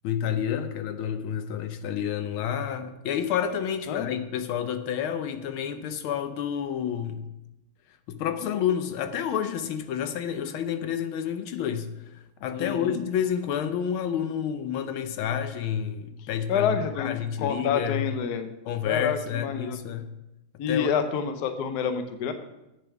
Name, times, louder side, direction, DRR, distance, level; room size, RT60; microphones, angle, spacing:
voice 1, 0.0-7.3 8.1-18.0 18.7-20.1 20.7-20.9, left 9 dB, 80° left, 1.5 m, -29 dB
voice 2, 12.5-13.0 16.5-18.5 18.8-19.8 20.6-22.3, left 7 dB, 60° left, 1.1 m, -28 dB
8.5 x 7.0 x 5.7 m
omnidirectional pair, 2.3 m